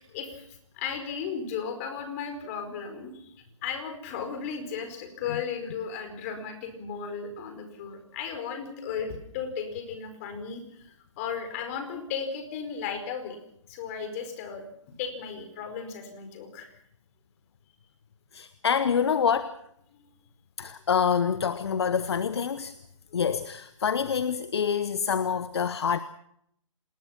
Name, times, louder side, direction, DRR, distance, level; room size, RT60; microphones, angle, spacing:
voice 1, 0.1-0.5 0.7-3.3 3.6-13.4 13.7-14.6 15.0-16.8 19.9-20.1 23.1-23.2, left 6 dB, 25° left, 7 dB, 4.8 m, -35 dB
voice 2, 18.3-19.6 20.6-22.7 23.1-26.0, left 7 dB, 55° left, 13 dB, 1.1 m, -26 dB
26.5 x 20.5 x 5.9 m, 0.72 s
figure-of-eight pair, 145°, 17 cm